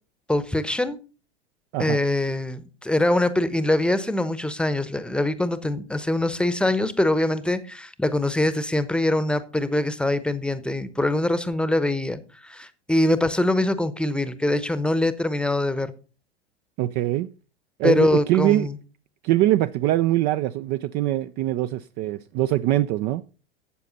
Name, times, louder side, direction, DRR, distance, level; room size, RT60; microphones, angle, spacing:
voice 1, 0.3-1.0 1.8-15.9 17.8-18.8, left 1 dB, 5° left, 0.9 m, -23 dB
voice 2, 16.8-17.3 17.8-18.7 19.2-23.2, right 15 dB, 30° right, 0.4 m, -23 dB
12.5 x 8.3 x 4.0 m
figure-of-eight pair, 90°, 32 cm